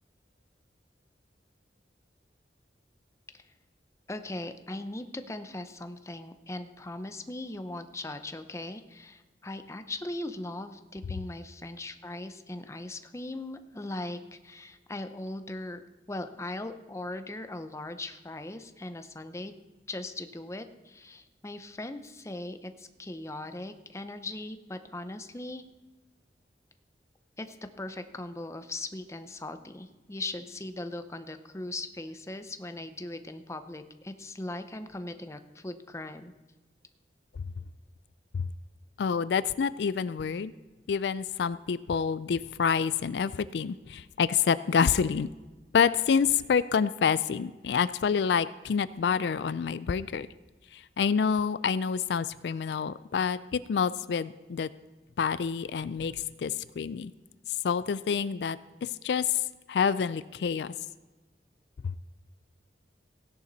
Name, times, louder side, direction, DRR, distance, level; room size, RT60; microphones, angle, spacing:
voice 1, 4.1-15.8 16.1-19.5 19.9-25.6 27.4-36.3, left 2 dB, 15° left, 9 dB, 0.6 m, -39 dB
voice 2, 39.0-40.5 40.9-45.3 45.7-50.3 50.7-54.7 55.2-57.1 57.5-60.7 61.8-61.9, left 6 dB, 75° left, 16 dB, 0.4 m, -28 dB
16.0 x 10.5 x 4.1 m, 1.2 s
head